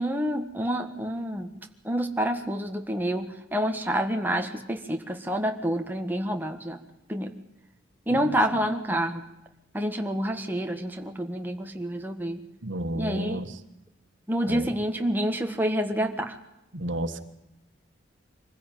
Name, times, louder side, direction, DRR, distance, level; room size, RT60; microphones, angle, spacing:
voice 1, 0.0-1.5 1.8-6.8 7.1-7.3 8.1-9.2 9.7-12.4 12.9-13.5 14.3-16.4, equal, 10° right, 4 dB, 1.5 m, -28 dB
voice 2, 12.6-13.5 14.5-14.7 16.7-17.2, right 1 dB, 75° right, 9 dB, 1.7 m, -31 dB
24.5 x 15.5 x 9.2 m, 0.91 s
head